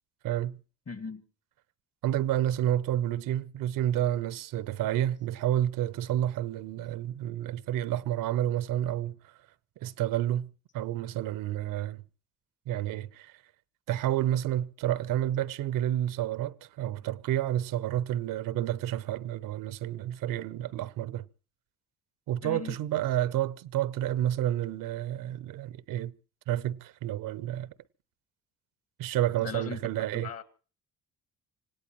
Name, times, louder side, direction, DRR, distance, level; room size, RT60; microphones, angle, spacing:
voice 1, 0.2-0.6 2.0-9.4 9.8-12.0 12.7-13.4 13.9-21.3 22.3-26.1 26.5-27.7 29.0-30.3, right 12 dB, 85° right, 0.8 m, -30 dB
voice 2, 0.9-1.2 22.4-22.8 29.4-29.8 30.1-30.4, left 5 dB, 50° left, 2.0 m, -38 dB
26.0 x 17.5 x 3.1 m
cardioid pair, 80°, 32 cm